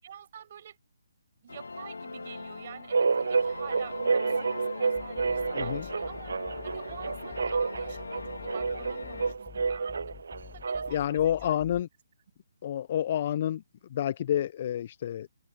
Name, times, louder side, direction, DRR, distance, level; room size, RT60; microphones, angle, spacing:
voice 1, 0.0-0.8 1.4-6.3 6.6-9.9 10.5-11.6, right 9 dB, 45° right, 6.2 m, -48 dB
sound 1, 1.5-9.3, left 3 dB, 70° left, 2.6 m, -41 dB
sound 2, 2.9-11.1, right 4 dB, 60° right, 0.8 m, -30 dB
sound 3, 5.0-11.8, left 11 dB, 15° left, 0.9 m, -50 dB
voice 2, 5.5-5.9 10.9-11.9 12.6-13.6 13.9-15.3, left 10 dB, 40° left, 0.9 m, -29 dB
figure-of-eight pair, 140°, 0 cm